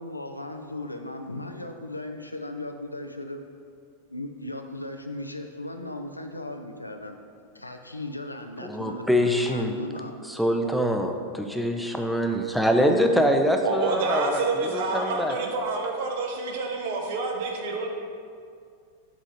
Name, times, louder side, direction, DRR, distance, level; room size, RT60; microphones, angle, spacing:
voice 1, 0.0-3.4 4.1-7.2 7.5-10.2, left 1 dB, 85° left, 5 dB, 0.5 m, -37 dB
voice 2, 8.6-9.7 10.3-14.4 14.7-15.4, equal, ahead, 3 dB, 0.6 m, -24 dB
voice 3, 13.6-17.9, right 3 dB, 50° right, 2 dB, 0.9 m, -28 dB
7.5 x 3.7 x 5.2 m, 2.3 s
figure-of-eight pair, 90°, 0 cm